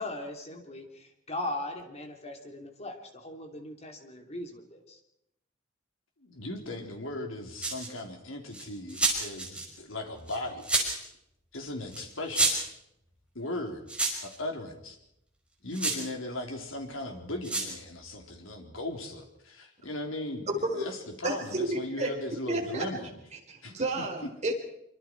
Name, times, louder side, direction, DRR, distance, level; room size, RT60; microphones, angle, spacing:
voice 1, 0.0-5.0, left 1 dB, 35° left, 4 dB, 3.1 m, -39 dB
voice 2, 6.2-10.9 11.5-12.5 13.3-13.8 14.2-15.0 15.6-23.1 23.6-23.7, left 1 dB, 85° left, 3 dB, 3.9 m, -37 dB
sound 1, 7.6-8.0 8.5-9.6 10.3-11.0 11.9-12.0 12.3-12.7 13.9-14.4 15.7-16.0 17.4-17.7, right 3 dB, 5° right, 5.5 m, -28 dB
voice 3, 20.5-20.9 21.2-21.6 22.0-22.1 22.5-22.8 23.5-24.5, right 2 dB, 35° right, 1 dB, 4.5 m, -31 dB
25.5 x 25.0 x 4.7 m, 0.79 s
head